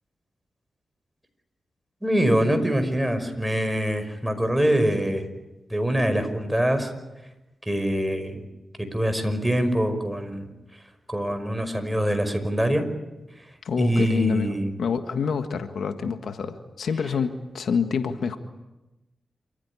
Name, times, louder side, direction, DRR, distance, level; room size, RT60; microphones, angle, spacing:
voice 1, 2.0-5.2 5.7-6.9 7.7-8.4 8.8-10.5 11.1-12.9 13.8-14.7, equal, 10° right, 8 dB, 5.5 m, -24 dB
voice 2, 13.6-18.4, left 6 dB, 80° left, 8 dB, 1.6 m, -27 dB
28.5 x 15.5 x 9.9 m, 1.0 s
cardioid pair, 50°, 0 cm